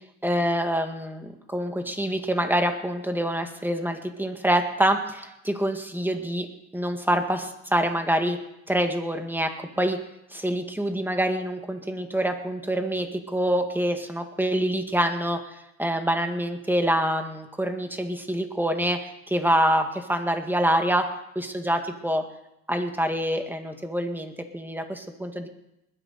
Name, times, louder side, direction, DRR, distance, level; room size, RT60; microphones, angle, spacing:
voice 1, 0.2-6.5 6.7-8.4 8.7-10.0 10.3-15.4 15.8-22.2 22.7-25.5, right 1 dB, 5° right, 5 dB, 1.9 m, -26 dB
20.5 x 10.5 x 4.3 m, 0.85 s
cardioid pair, 90°, 30 cm